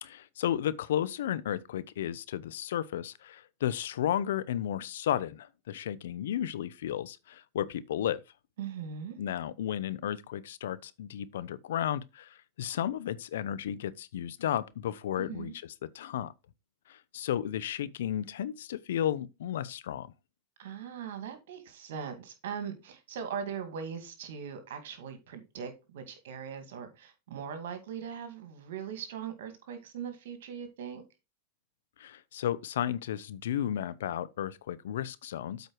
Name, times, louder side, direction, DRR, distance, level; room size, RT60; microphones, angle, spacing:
voice 1, 0.0-8.2 9.2-16.3 16.9-20.1 32.0-35.7, left 10 dB, 80° left, 0.6 m, -33 dB
voice 2, 8.6-9.2 15.2-15.5 20.6-31.0, right 7 dB, 75° right, 2.0 m, -40 dB
8.0 x 4.7 x 4.6 m
hypercardioid pair, 120°, 0 cm